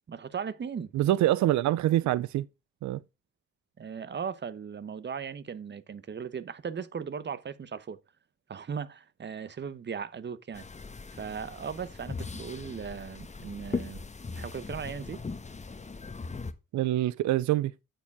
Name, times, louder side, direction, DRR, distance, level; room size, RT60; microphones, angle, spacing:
voice 1, 0.1-0.9 3.8-8.0 8.5-10.6 11.2-14.0 14.4-15.2, right 6 dB, 35° right, 0.9 m, -37 dB
voice 2, 0.9-2.5 2.8-3.0 16.7-17.7, right 14 dB, 70° right, 0.5 m, -25 dB
sound 1, 10.5-16.5, left 4 dB, 25° left, 1.2 m, -39 dB
9.0 x 7.4 x 3.5 m
cardioid pair, 90°, 30 cm